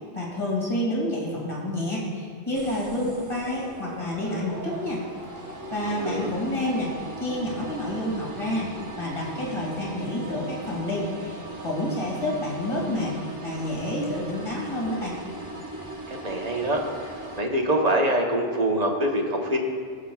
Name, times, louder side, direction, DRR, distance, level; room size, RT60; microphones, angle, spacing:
voice 1, 0.1-5.0 5.7-6.9 7.2-8.7 9.0-13.1 13.4-15.2, left 1 dB, 30° left, -4 dB, 2.2 m, -29 dB
sound 1, 2.5-17.4, right 2 dB, 20° right, 0.9 m, -39 dB
voice 2, 5.9-6.3 16.1-19.6, right 1 dB, 40° right, 1 dB, 1.1 m, -25 dB
21.5 x 7.3 x 2.3 m, 2.1 s
omnidirectional pair, 1.1 m